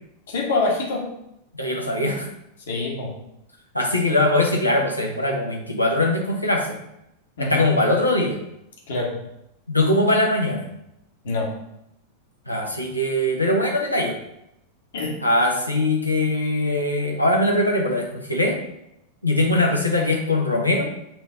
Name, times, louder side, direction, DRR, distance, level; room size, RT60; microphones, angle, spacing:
voice 1, 0.3-1.1 2.7-3.1 7.4-7.6 8.9-9.1 11.2-11.5 14.9-15.1, left 2 dB, 60° left, -1 dB, 1.7 m, -25 dB
voice 2, 1.5-2.1 3.7-6.8 7.4-8.4 9.7-10.7 12.5-14.1 15.2-18.6 19.2-20.9, left 1 dB, 85° left, 0 dB, 1.2 m, -21 dB
6.1 x 3.3 x 5.6 m, 0.81 s
figure-of-eight pair, 90°, 0 cm